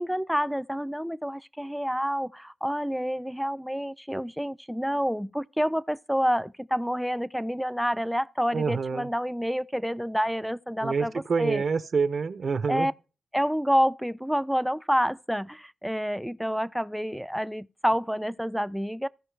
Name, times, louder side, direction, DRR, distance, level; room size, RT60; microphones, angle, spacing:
voice 1, 0.0-11.6 12.7-12.9 13.3-19.1, equal, ahead, 0.4 m, -28 dB
voice 2, 8.5-9.1 10.8-12.9, right 5 dB, 55° right, 0.7 m, -27 dB
15.5 x 5.4 x 3.3 m
cardioid pair, 100°, 0 cm